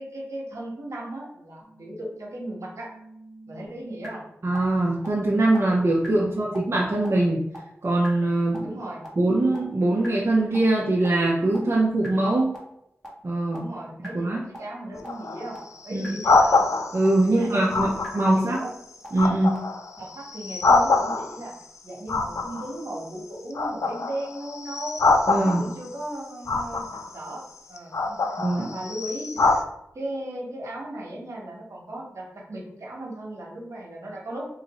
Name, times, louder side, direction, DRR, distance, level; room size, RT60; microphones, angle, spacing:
voice 1, 0.0-2.9 3.5-4.2 6.2-6.5 8.6-9.1 13.5-15.6 15.8-16.6 17.1-18.7 20.0-21.5 21.8-25.0 25.4-26.9 27.1-27.4 27.7-28.2 28.5-29.6 29.9-34.4, right 1 dB, 70° right, -3 dB, 1.3 m, -36 dB
sound 1, 1.6-4.1 4.5-4.6 5.0-5.1 5.5-5.6 6.0-6.1 6.5-6.6 7.0-7.1 7.5-7.6 8.0-8.1 8.5-8.6 9.0-9.1 9.5-9.6 10.0-10.1 10.5-10.6 11.0-11.1 11.5-11.6 12.0-12.1 12.5-12.6 13.0-13.1 13.5-13.6 14.0-14.1 14.5-14.6 15.0-15.1 15.5-15.6 16.0-16.1 16.5-16.6 17.0-17.1 17.5-17.6 18.0-18.1 18.5-18.6 19.0-19.1 19.5-19.6, right 1 dB, 5° left, 1.4 m, -43 dB
voice 2, 4.4-7.4 7.8-8.7 9.2-12.5 13.2-13.7 14.1-14.4 15.9-16.2 16.9-18.6 19.1-19.6 25.3-25.7 28.4-28.7, right 2 dB, 55° right, -5 dB, 0.7 m, -22 dB
sound 2, 14.9-17.1 17.7-18.4 18.8-21.5 22.1-23.2 23.5-25.9 26.5-27.2 27.8-29.6, left 3 dB, 75° left, 0.4 m, -24 dB
3.1 x 2.5 x 4.2 m, 0.81 s
cardioid pair, 50°, 5 cm